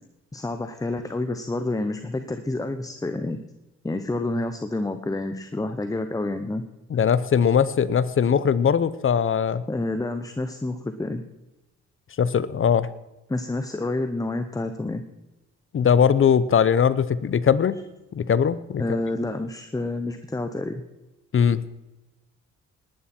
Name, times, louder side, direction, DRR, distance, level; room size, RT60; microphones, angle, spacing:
voice 1, 0.3-3.4 3.8-6.6 9.7-11.2 13.3-15.0 18.8-20.8, left 2 dB, 10° left, 8 dB, 1.0 m, -28 dB
voice 2, 6.9-9.6 12.2-12.9 15.7-17.8 18.1-18.8 21.3-21.6, left 7 dB, 45° left, 16 dB, 0.9 m, -20 dB
19.0 x 11.5 x 4.5 m, 1.0 s
cardioid pair, 90°, 30 cm